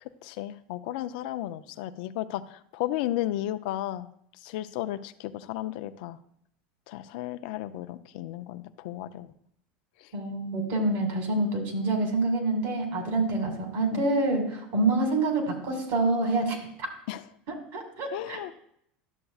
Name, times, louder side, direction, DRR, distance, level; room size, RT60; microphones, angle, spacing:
voice 1, 0.2-4.1 4.4-6.2 6.9-9.3 10.0-10.1 13.9-14.0 17.1-17.2 18.1-18.5, left 14 dB, 70° left, 12 dB, 0.4 m, -34 dB
voice 2, 10.1-16.9 17.7-18.6, right 2 dB, 65° right, 3 dB, 2.2 m, -27 dB
11.5 x 6.7 x 2.4 m, 0.70 s
supercardioid pair, 105°, 5 cm